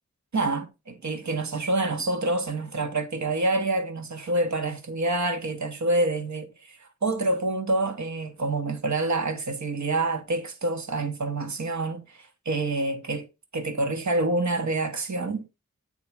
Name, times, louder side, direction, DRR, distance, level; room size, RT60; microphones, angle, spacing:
voice 1, 0.3-13.3 13.5-15.5, right 2 dB, 70° right, 1.3 m, -27 dB
8.5 x 4.0 x 4.7 m
wide cardioid pair, 65°, 29 cm